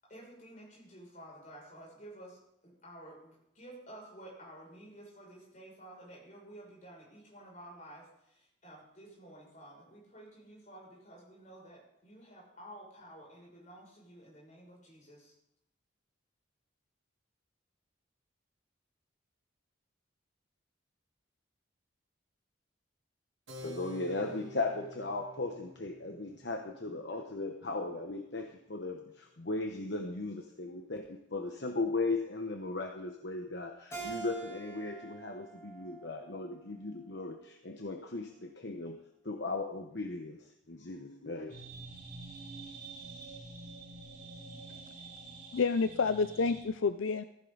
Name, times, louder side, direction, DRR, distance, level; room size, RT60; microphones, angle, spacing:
voice 1, 0.0-15.3, right 1 dB, 40° left, -3 dB, 6.6 m, -52 dB
Keyboard (musical), 23.5-29.6, left 1 dB, 65° right, 3.3 m, -51 dB
voice 2, 23.6-41.6, left 3 dB, 60° left, 3 dB, 1.1 m, -37 dB
Keyboard (musical) 2, 33.9-37.1, right 4 dB, 15° left, 5.1 m, -46 dB
sound 1, 41.5-46.6, right 3 dB, 40° right, 7.0 m, -47 dB
voice 3, 45.5-47.2, left 4 dB, 80° left, 10 dB, 0.5 m, -29 dB
15.0 x 15.0 x 4.0 m, 0.80 s
head